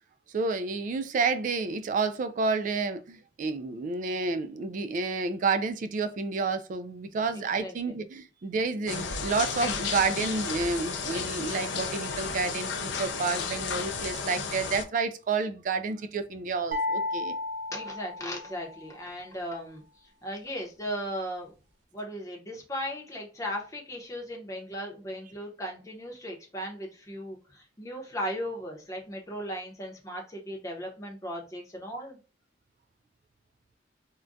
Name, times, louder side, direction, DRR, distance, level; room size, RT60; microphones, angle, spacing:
voice 1, 0.3-17.4, right 4 dB, 45° right, 0.3 m, -30 dB
voice 2, 7.3-8.0 17.7-19.8 20.2-21.5 21.9-32.2, equal, 20° left, 0.7 m, -37 dB
sound 1, 8.9-14.8, left 5 dB, 80° left, 0.5 m, -33 dB
sound 2, 16.7-18.9, left 2 dB, 80° right, 0.8 m, -33 dB
3.5 x 2.2 x 2.6 m
head